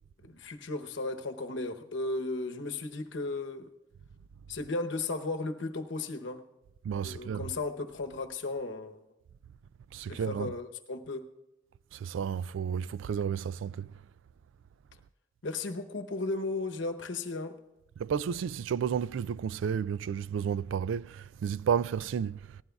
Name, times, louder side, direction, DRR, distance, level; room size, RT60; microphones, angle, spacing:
voice 1, 0.2-3.7 4.5-6.4 7.0-9.0 10.1-11.3 15.4-17.6, left 3 dB, 80° left, 0.9 m, -35 dB
voice 2, 6.8-7.6 9.9-10.5 11.9-13.9 18.0-22.6, right 7 dB, 90° right, 0.3 m, -32 dB
19.0 x 15.0 x 2.3 m
head